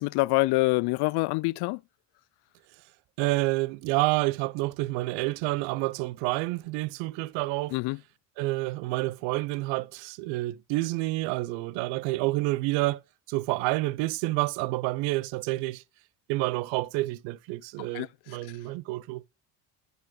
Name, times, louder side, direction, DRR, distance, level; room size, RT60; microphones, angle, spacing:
voice 1, 0.0-1.8 7.7-8.0 17.8-18.1, left 23 dB, 60° left, 0.5 m, -26 dB
voice 2, 3.2-7.8 8.4-13.0 13.3-15.8 16.3-19.2, right 20 dB, 70° right, 0.8 m, -29 dB
10.5 x 5.3 x 4.0 m
hypercardioid pair, 70°, 45 cm